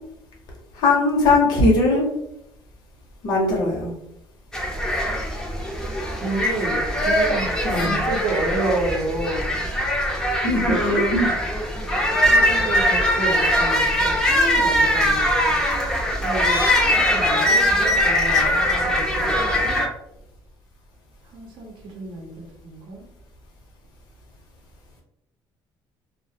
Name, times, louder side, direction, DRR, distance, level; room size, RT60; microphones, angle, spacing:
voice 1, 0.7-2.1 3.2-3.9 7.6-8.0 10.4-11.3, left 2 dB, 50° left, -2 dB, 0.6 m, -19 dB
sound 1, 4.5-19.9, equal, 5° left, 0.4 m, -21 dB
voice 2, 6.2-9.7 10.6-11.1 12.2-15.6 15.8-19.8 21.3-23.1, right 2 dB, 60° right, -1 dB, 0.6 m, -30 dB
2.3 x 2.0 x 2.6 m, 0.79 s
cardioid pair, 155°, 9 cm